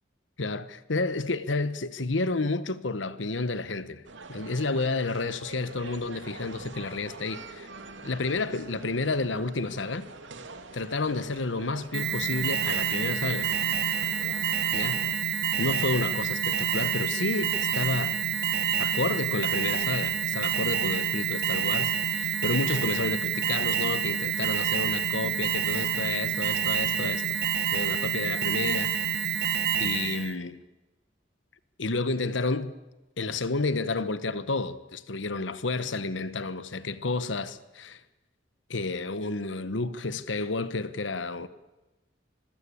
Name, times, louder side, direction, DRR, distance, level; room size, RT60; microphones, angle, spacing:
voice 1, 0.4-4.0 4.3-7.7 8.0-10.1 10.7-13.6 14.7-15.1 15.6-18.2 18.8-27.2 27.7-28.9 29.8-30.6 31.8-32.8 33.2-38.0 38.7-41.5, left 3 dB, 75° left, 1.2 m, -30 dB
sound 1, 4.0-15.1, right 3 dB, 75° right, 2.7 m, -45 dB
Alarm, 11.9-30.3, right 8 dB, 60° right, 1.8 m, -28 dB
26.0 x 22.0 x 8.6 m
head